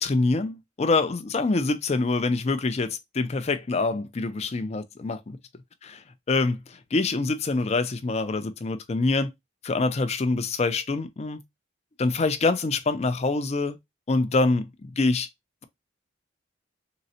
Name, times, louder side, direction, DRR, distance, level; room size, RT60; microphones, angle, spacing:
voice 1, 0.0-5.4 5.9-6.0 6.3-9.3 9.6-11.4 12.0-13.8 14.1-14.7 15.0-15.3, left 3 dB, 35° left, 0.4 m, -25 dB
3.8 x 2.1 x 2.7 m
head